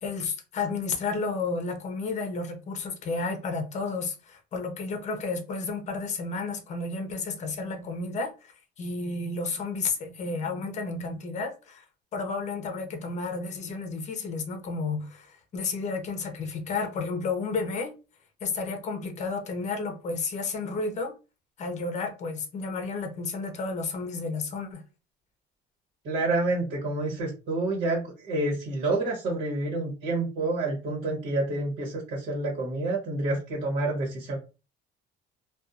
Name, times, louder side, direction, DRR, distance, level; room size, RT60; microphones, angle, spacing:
voice 1, 0.0-11.8 12.1-17.9 18.4-21.1 21.6-24.8, left 4 dB, 40° left, 0.7 m, -32 dB
voice 2, 26.0-34.4, right 2 dB, 70° right, 1.2 m, -28 dB
2.6 x 2.4 x 2.4 m
cardioid pair, 120°, 19 cm